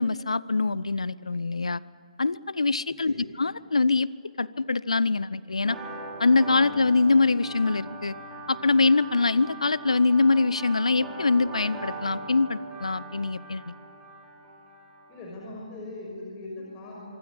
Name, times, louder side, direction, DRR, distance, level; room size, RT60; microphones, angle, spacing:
voice 1, 0.0-1.8 2.2-4.1 4.4-5.8 6.2-8.1 8.5-13.6, left 3 dB, 70° left, 20 dB, 0.7 m, -24 dB
voice 2, 3.0-3.3 15.1-17.2, left 2 dB, 20° left, -2 dB, 5.9 m, -40 dB
sound 1, 5.6-15.2, right 2 dB, 10° right, 6.1 m, -40 dB
25.5 x 24.5 x 9.6 m, 2.4 s
figure-of-eight pair, 135°, 3 cm